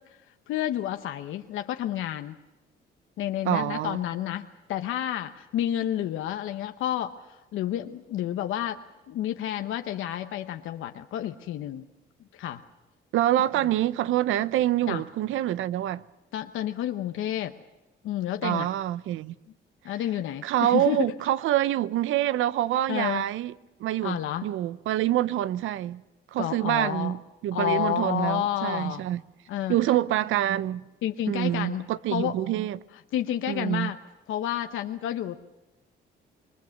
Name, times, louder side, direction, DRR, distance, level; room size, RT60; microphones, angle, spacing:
voice 1, 0.5-2.4 3.2-11.9 12.3-12.6 14.9-15.0 16.3-17.5 18.0-18.7 19.8-21.1 22.9-23.2 24.0-24.5 26.4-27.1 27.5-29.0 29.5-29.8 31.0-32.4 33.1-34.0 34.3-35.4, left 11 dB, 85° left, 1.0 m, -30 dB
voice 2, 3.4-4.0 13.1-16.0 18.4-19.3 20.4-23.5 23.8-26.0 26.3-29.2 29.7-30.8 31.3-32.8 33.5-33.9, right 13 dB, 85° right, 0.7 m, -26 dB
27.5 x 21.5 x 6.6 m
cardioid pair, 90°, 20 cm